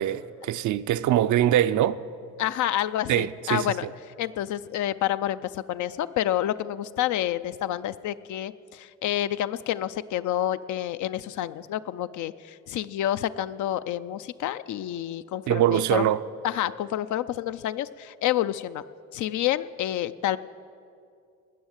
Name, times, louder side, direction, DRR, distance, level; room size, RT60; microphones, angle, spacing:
voice 1, 0.0-2.0 3.1-3.7 15.5-16.2, right 12 dB, 75° right, 0.5 m, -23 dB
voice 2, 2.4-3.9 4.2-16.1 16.4-18.8 19.1-20.4, left 12 dB, 75° left, 0.5 m, -28 dB
19.0 x 6.4 x 8.9 m
cardioid pair, 90°, 30 cm